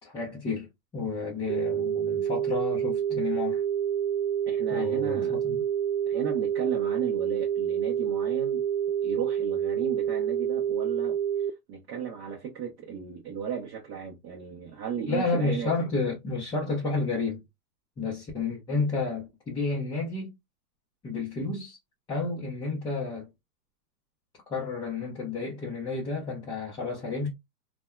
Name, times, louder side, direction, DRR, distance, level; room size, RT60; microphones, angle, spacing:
voice 1, 0.0-0.7 0.9-3.6 4.7-5.6 15.1-17.4 18.0-20.3 21.0-21.8 22.1-23.3 24.5-27.3, left 3 dB, 10° left, 0.5 m, -31 dB
sound 1, 1.5-11.5, right 9 dB, 85° right, 0.6 m, -28 dB
voice 2, 4.5-5.4 6.1-8.6 9.0-11.2 11.7-15.7, right 7 dB, 35° right, 0.7 m, -35 dB
3.3 x 2.2 x 2.2 m
hypercardioid pair, 125°, 48 cm